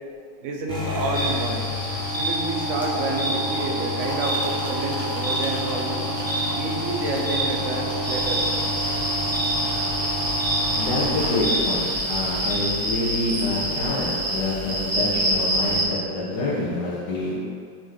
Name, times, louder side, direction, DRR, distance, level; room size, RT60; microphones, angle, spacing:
voice 1, 0.4-1.7 2.1-6.0 6.5-8.5, right 2 dB, 65° right, 1 dB, 0.7 m, -29 dB
sound 1, 0.7-12.0, left 1 dB, 5° left, 0.7 m, -30 dB
sound 2, 1.1-12.6, right 1 dB, 15° right, 1.5 m, -30 dB
sound 3, 8.0-15.8, right 1 dB, 30° right, 0.9 m, -27 dB
voice 2, 10.8-17.4, left 2 dB, 60° left, -7 dB, 1.9 m, -26 dB
9.5 x 3.2 x 3.9 m, 2.3 s
omnidirectional pair, 2.1 m